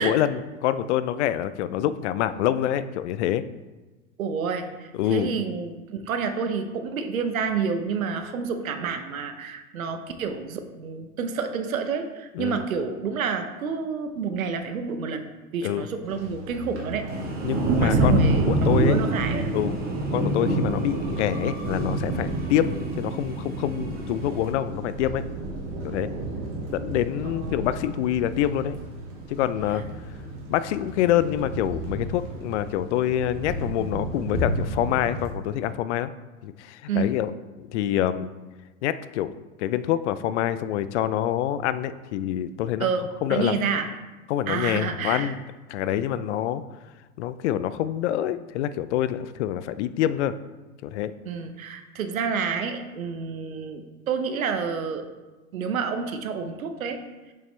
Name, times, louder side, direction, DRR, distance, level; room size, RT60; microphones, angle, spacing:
voice 1, 0.0-3.4 4.9-5.3 12.3-12.6 15.6-15.9 17.4-19.0 19.5-19.7 20.1-25.2 25.8-26.1 26.7-28.8 29.3-29.8 30.5-36.1 36.4-37.3 37.6-38.3 38.8-39.3 39.6-42.9 43.2-43.6 44.3-45.4 45.7-46.6 47.2-50.3 50.8-51.1, left 11 dB, 60° left, 14 dB, 0.5 m, -26 dB
voice 2, 4.2-15.2 15.5-17.1 17.8-19.5 27.2-27.6 36.9-37.1 42.8-43.0 43.3-43.9 44.5-45.3 51.3-55.0 55.5-57.0, right 6 dB, 80° right, 7 dB, 0.9 m, -29 dB
Thunder, 16.1-35.3, right 2 dB, 40° right, 1.9 m, -28 dB
sound 1, 17.1-24.5, right 3 dB, 20° right, 1.1 m, -42 dB
7.0 x 5.4 x 3.3 m, 1.2 s
hypercardioid pair, 100°, 41 cm